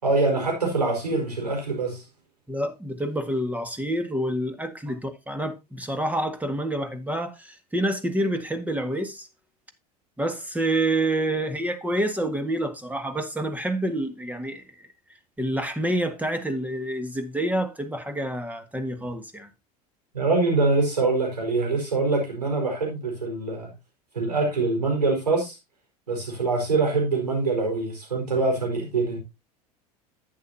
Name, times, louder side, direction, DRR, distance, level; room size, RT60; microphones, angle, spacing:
voice 1, 0.0-2.0 20.1-23.7 24.1-25.5 26.1-29.2, right 3 dB, 90° right, 4.7 m, -24 dB
voice 2, 2.5-9.3 10.2-14.6 15.4-19.5, right 1 dB, 10° right, 1.8 m, -28 dB
11.0 x 8.9 x 2.7 m
hypercardioid pair, 80°, 20 cm